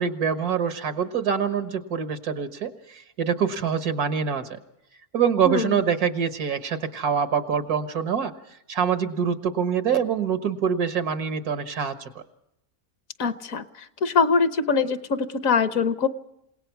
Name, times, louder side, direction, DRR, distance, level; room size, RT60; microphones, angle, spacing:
voice 1, 0.0-4.6 5.1-8.3 8.7-12.2, right 7 dB, 90° right, 9 dB, 1.9 m, -25 dB
voice 2, 5.4-5.8 13.2-16.1, left 5 dB, 65° left, 11 dB, 1.4 m, -23 dB
28.0 x 18.0 x 5.9 m, 0.81 s
omnidirectional pair, 1.6 m